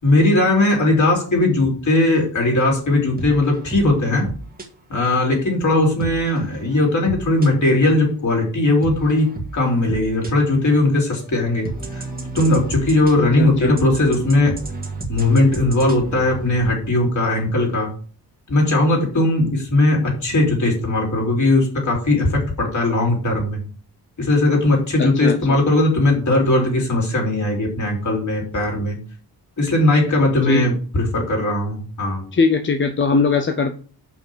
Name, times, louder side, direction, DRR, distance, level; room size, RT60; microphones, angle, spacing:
voice 1, 0.0-4.3 4.9-11.7 11.9-12.0 12.3-14.6 15.1-17.9 18.5-23.6 24.2-29.0 29.6-32.2, left 2 dB, 45° left, -1 dB, 3.5 m, -18 dB
sound 1, 3.2-4.7 6.0-7.8 8.8-10.3 11.0-16.6, right 3 dB, 25° right, 1.8 m, -32 dB
voice 2, 13.4-13.7 25.0-25.4 30.5-30.7 32.3-33.7, left 4 dB, 30° left, 7 dB, 0.6 m, -19 dB
6.4 x 5.8 x 6.2 m, 0.41 s
wide cardioid pair, 145°, 39 cm